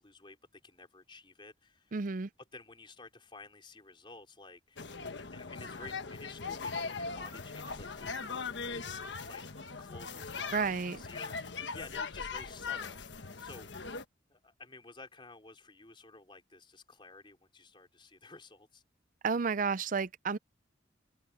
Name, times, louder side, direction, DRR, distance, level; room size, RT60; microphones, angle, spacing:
voice 1, 0.0-2.0 2.5-4.9 5.2-8.8 9.3-9.4 9.8-13.0 13.4-13.7 14.3-18.8, left 3 dB, 25° left, 4.0 m, -52 dB
voice 2, 1.9-2.3 10.5-11.0 19.2-20.4, right 5 dB, 45° right, 0.5 m, -31 dB
sound 1, 4.8-14.0, left 5 dB, 70° left, 1.3 m, -40 dB
open air
head